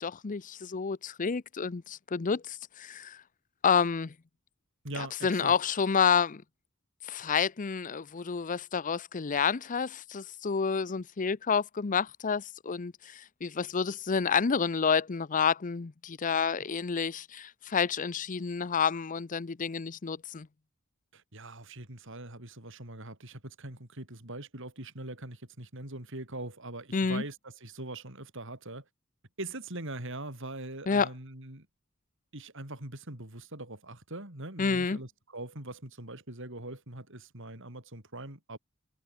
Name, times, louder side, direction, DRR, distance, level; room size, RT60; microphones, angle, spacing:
voice 1, 0.0-3.2 3.6-4.1 5.0-6.4 7.0-20.5 26.9-27.2 30.9-31.1 34.6-35.0, left 6 dB, 40° left, 0.6 m, -29 dB
voice 2, 4.8-5.5 21.1-28.8 29.4-31.7 32.3-38.6, right 2 dB, 65° right, 5.6 m, -42 dB
head